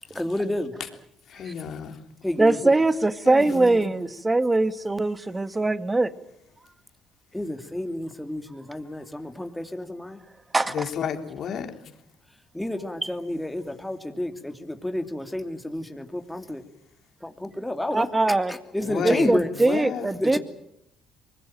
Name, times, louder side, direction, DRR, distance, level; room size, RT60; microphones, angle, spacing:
voice 1, 0.1-0.7 2.2-2.8 7.3-10.2 12.5-16.6 17.2-18.1 18.7-19.5 20.2-20.4, left 1 dB, 5° left, 5 dB, 2.9 m, -30 dB
voice 2, 1.3-2.0 3.2-3.9 10.7-11.7 18.9-19.3 19.6-20.1, left 7 dB, 60° left, 6 dB, 3.3 m, -31 dB
voice 3, 2.4-6.1 10.5-10.9 13.0-13.1 17.9-18.5 19.0-20.4, right 2 dB, 20° right, 12 dB, 1.8 m, -22 dB
24.0 x 21.0 x 9.2 m, 0.79 s
supercardioid pair, 70°, 0 cm